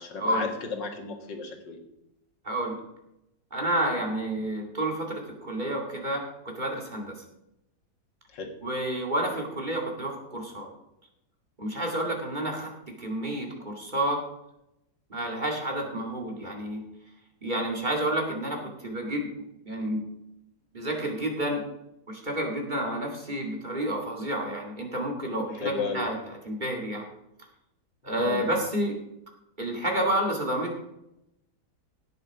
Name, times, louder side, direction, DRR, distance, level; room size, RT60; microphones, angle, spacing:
voice 1, 0.0-1.8 8.3-8.6 25.5-26.1 28.1-28.5, left 4 dB, 80° left, 4 dB, 2.4 m, -34 dB
voice 2, 2.4-2.8 3.5-6.2 6.5-7.1 8.6-10.7 11.6-12.7 13.0-14.2 15.1-16.8 17.4-19.3 19.6-20.0 20.7-21.6 22.1-26.2 26.4-27.0 28.0-29.0 29.6-30.8, right 1 dB, 25° right, 0 dB, 2.4 m, -29 dB
17.0 x 6.8 x 4.9 m, 0.85 s
omnidirectional pair, 1.9 m